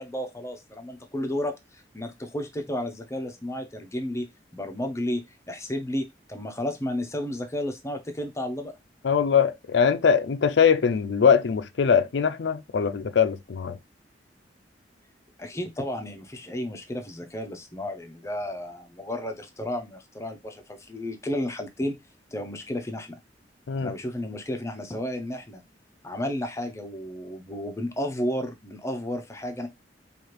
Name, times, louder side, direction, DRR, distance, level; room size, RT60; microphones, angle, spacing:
voice 1, 0.0-4.3 4.5-5.2 5.5-8.7 15.4-21.9 22.3-23.2 23.8-25.6 26.0-29.7, left 1 dB, 15° left, 0.6 m, -32 dB
voice 2, 9.0-13.8 23.7-23.9, left 6 dB, 75° left, 0.4 m, -22 dB
4.8 x 2.4 x 3.0 m
head